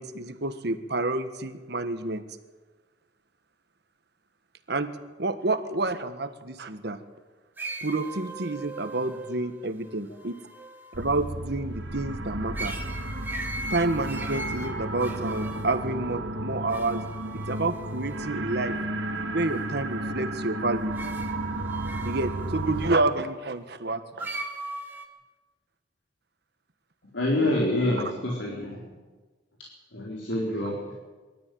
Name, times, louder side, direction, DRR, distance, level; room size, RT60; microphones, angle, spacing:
voice 1, 0.0-2.2 4.7-4.9 5.2-7.0 7.8-10.4 11.0-12.8 13.7-17.0 17.3-18.8 19.3-20.9 22.0-24.4, right 2 dB, 60° right, 9 dB, 1.5 m, -29 dB
sound 1, 7.6-11.2 12.5-15.9 16.7-18.2 20.9-23.0 24.2-25.1, right 2 dB, 10° right, 2.0 m, -39 dB
sound 2, 10.9-22.9, right 1 dB, 75° right, 1.6 m, -33 dB
voice 2, 27.1-28.8 29.9-30.9, left 1 dB, 90° left, -3 dB, 4.1 m, -27 dB
22.5 x 13.0 x 9.4 m, 1.3 s
head